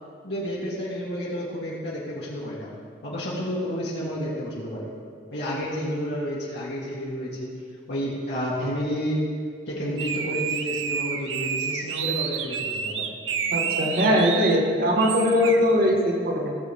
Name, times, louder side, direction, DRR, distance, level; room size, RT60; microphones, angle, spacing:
voice 1, 0.2-2.8 3.0-4.9 5.3-7.5 7.9-9.3 9.7-13.2, equal, 65° left, -8 dB, 2.0 m, -30 dB
sound 1, 10.0-14.6 15.0-15.6, right 7 dB, 85° right, 0.6 m, -29 dB
voice 2, 13.5-16.6, equal, 55° right, 0 dB, 1.6 m, -21 dB
16.5 x 7.1 x 3.6 m, 2.1 s
head